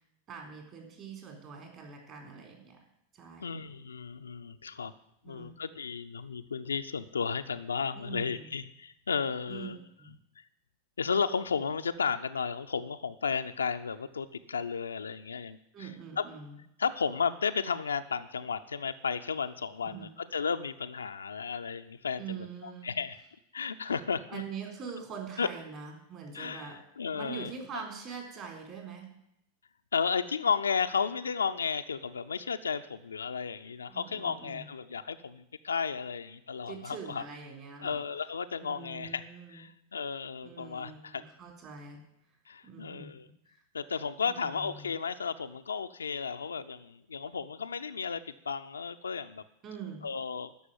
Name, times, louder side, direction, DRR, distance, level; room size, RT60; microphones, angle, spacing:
voice 1, 0.3-2.8 3.1-3.5 5.2-5.6 7.9-8.5 9.5-10.1 15.7-16.6 19.8-20.1 22.2-22.9 23.8-23.9 24.3-26.8 27.1-29.1 33.9-34.7 36.7-38.0 38.6-39.7 40.4-42.0 42.6-43.1 43.5-43.6 44.3-44.9 49.6-50.1, right 6 dB, 35° right, 2 dB, 4.1 m, -44 dB
voice 2, 3.4-4.9 5.2-9.8 10.4-10.5 11.0-15.9 16.2-16.3 16.8-23.2 23.5-24.4 25.4-25.5 26.3-27.5 29.9-37.2 37.8-39.2 39.5-41.2 42.5-43.3 43.7-49.4 50.0-50.5, left 6 dB, 70° left, 8 dB, 0.6 m, -33 dB
12.5 x 6.2 x 9.4 m, 0.78 s
figure-of-eight pair, 90°, 0 cm